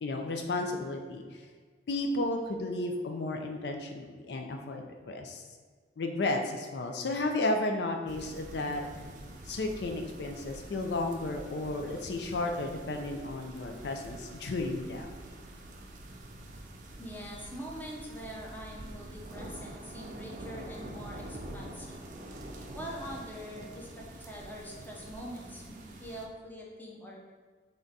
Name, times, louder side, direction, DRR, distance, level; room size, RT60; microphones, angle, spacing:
voice 1, 0.0-1.4 1.9-5.4 6.0-8.8 9.5-15.1, left 2 dB, 65° left, 3 dB, 0.4 m, -33 dB
sound 1, 8.1-26.2, right 1 dB, 40° right, 0.5 m, -46 dB
voice 2, 17.0-22.0 22.7-27.2, equal, 10° left, -3 dB, 0.7 m, -44 dB
3.8 x 3.4 x 4.0 m, 1.5 s
head